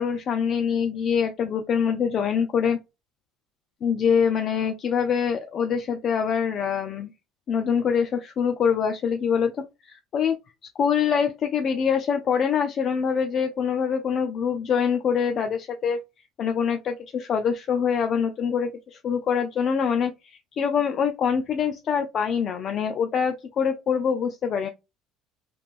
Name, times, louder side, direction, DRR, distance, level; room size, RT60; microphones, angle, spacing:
voice 1, 0.0-2.8 3.8-7.1 7.5-9.5 9.8-10.4 10.8-16.0 16.4-24.7, left 7 dB, 45° left, 0.4 m, -24 dB
3.4 x 3.0 x 2.5 m
cardioid pair, 120°, 0 cm